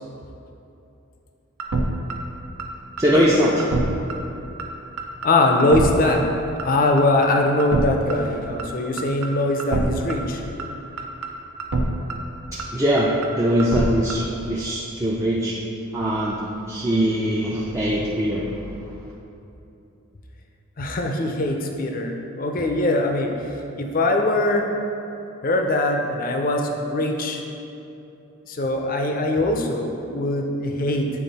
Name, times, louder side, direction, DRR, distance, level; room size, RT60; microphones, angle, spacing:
sound 1, 1.6-1.8 2.1-2.2 2.6-2.7 3.0-3.3 3.6-3.8 4.1-4.2 4.6-4.7 5.0-5.3 5.6-5.8 6.1-6.2 6.6-6.7 7.0-7.3 7.6-7.8 8.1-8.2 8.6-8.7 9.0-9.3 9.6-9.8 10.1-10.2 10.6-10.7 11.0-11.3 11.6-11.8 12.1-12.2 12.6-12.7 13.0-13.3 13.6-13.8 14.1-14.2, right 3 dB, 80° right, 0.6 m, -25 dB
voice 1, 3.0-3.5 12.7-15.5 15.9-16.4 16.7-18.5, equal, 15° right, -6 dB, 0.4 m, -21 dB
voice 2, 5.2-6.2 6.6-10.4 20.8-23.5 23.8-24.6 25.4-27.4 28.5-31.1, left 2 dB, 40° left, 3 dB, 0.5 m, -22 dB
8.5 x 3.7 x 4.1 m, 2.8 s
head